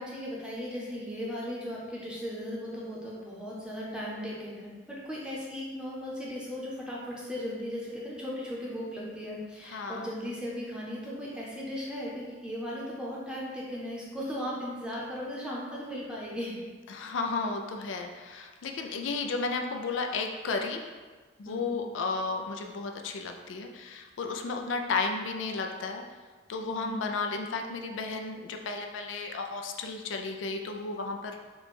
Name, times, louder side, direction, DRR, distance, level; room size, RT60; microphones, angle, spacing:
voice 1, 0.0-16.6 21.4-21.8 26.6-27.0, equal, 5° right, -5 dB, 0.7 m, -37 dB
voice 2, 9.7-10.1 16.9-20.8 21.4-26.0 26.5-31.3, left 4 dB, 80° left, 4 dB, 0.4 m, -33 dB
4.5 x 2.2 x 4.2 m, 1.4 s
head